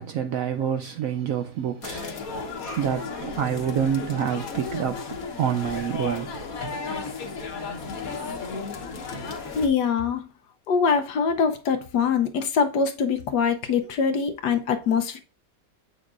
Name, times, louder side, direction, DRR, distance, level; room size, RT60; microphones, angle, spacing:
voice 1, 0.0-2.4 2.8-6.4, right 9 dB, 70° right, 0.8 m, -27 dB
sound 1, 1.8-9.7, left 4 dB, 55° left, 1.4 m, -34 dB
voice 2, 9.6-10.3 10.7-15.2, left 6 dB, 75° left, 1.3 m, -23 dB
7.7 x 6.1 x 2.4 m
omnidirectional pair, 1.9 m